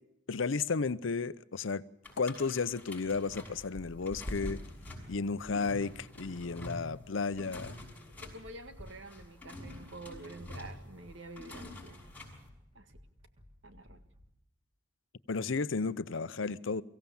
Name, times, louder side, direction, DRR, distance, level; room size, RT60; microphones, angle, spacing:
voice 1, 0.3-1.8 2.2-4.6 5.1-7.8 15.3-16.8, left 4 dB, 90° left, 0.7 m, -33 dB
sound 1, 2.0-12.5, left 1 dB, 10° left, 5.8 m, -46 dB
sound 2, 5.7-14.3, left 1 dB, 30° right, 2.2 m, -59 dB
voice 2, 8.2-12.1 12.7-12.9 13.6-14.0, right 2 dB, 80° right, 1.8 m, -48 dB
23.5 x 16.0 x 7.1 m
head